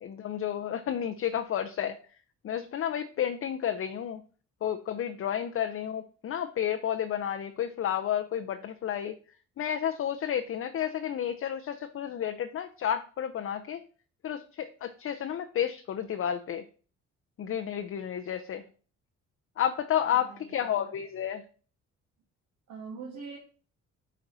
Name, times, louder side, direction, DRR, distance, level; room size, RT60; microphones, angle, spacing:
voice 1, 0.0-2.0 2.4-4.2 4.6-9.1 9.6-13.8 14.2-16.6 17.4-18.6 19.6-21.4, left 9 dB, 45° left, 6 dB, 0.6 m, -31 dB
voice 2, 20.1-21.0 22.7-23.4, right 5 dB, 70° right, -3 dB, 1.7 m, -43 dB
8.2 x 4.2 x 3.9 m, 0.40 s
cardioid pair, 90°, 30 cm